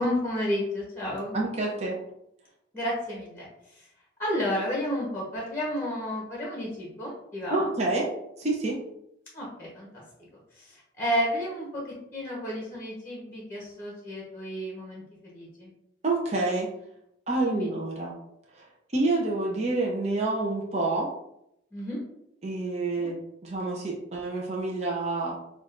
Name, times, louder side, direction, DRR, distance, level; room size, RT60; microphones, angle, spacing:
voice 1, 0.0-1.4 2.7-3.5 3.7-3.9 4.2-7.7 9.3-10.0 10.5-15.7 17.4-17.7 21.7-22.0 23.0-23.1, equal, 15° left, -4 dB, 0.9 m, -31 dB
voice 2, 1.3-2.0 7.5-8.1 8.4-8.8 16.0-16.7 17.3-18.1 18.5-18.7 18.9-21.1 22.4-25.4, right 2 dB, 35° right, -2 dB, 0.6 m, -28 dB
5.9 x 2.4 x 2.5 m, 0.80 s
head